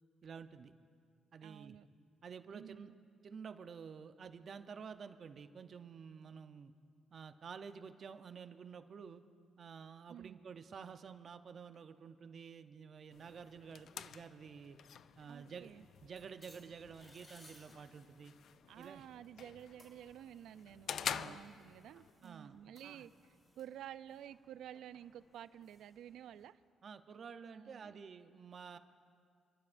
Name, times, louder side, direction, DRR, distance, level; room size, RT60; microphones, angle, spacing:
voice 1, 0.2-0.7 1.3-1.8 2.2-2.9 3.2-6.7 7.1-9.2 9.6-14.8 15.2-15.7 16.0-18.3 18.8-19.0 21.1-21.4 22.2-22.6 22.8-23.1 26.8-28.8, right 6 dB, 50° right, 9 dB, 0.7 m, -50 dB
voice 2, 1.4-1.9 2.5-2.9 10.1-10.4 15.3-15.9 18.7-23.1 23.6-26.6 27.6-28.0, right 10 dB, 80° right, 15 dB, 0.4 m, -52 dB
sound 1, 11.7-12.6 13.0-15.4 16.1-18.2 18.5-21.0 21.5-23.7 24.2-25.9, left 4 dB, 85° left, 1.2 m, -76 dB
sound 2, 13.1-22.1, left 8 dB, 65° left, 0.3 m, -48 dB
sound 3, 14.9-26.5, left 1 dB, 30° left, 3.9 m, -67 dB
29.0 x 12.0 x 2.6 m, 2.2 s
cardioid pair, 90°, 0 cm